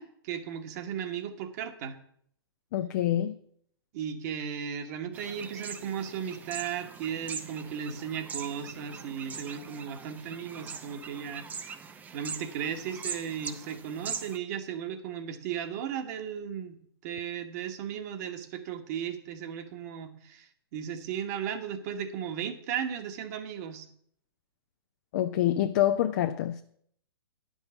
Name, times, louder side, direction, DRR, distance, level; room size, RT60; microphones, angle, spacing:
voice 1, 0.0-2.0 3.9-23.9, right 8 dB, 40° right, 1.3 m, -36 dB
voice 2, 2.7-3.4 25.1-26.6, left 12 dB, 40° left, 0.5 m, -26 dB
sound 1, 5.1-14.4, right 6 dB, 15° right, 0.6 m, -41 dB
10.5 x 5.5 x 7.1 m
figure-of-eight pair, 115°, 13 cm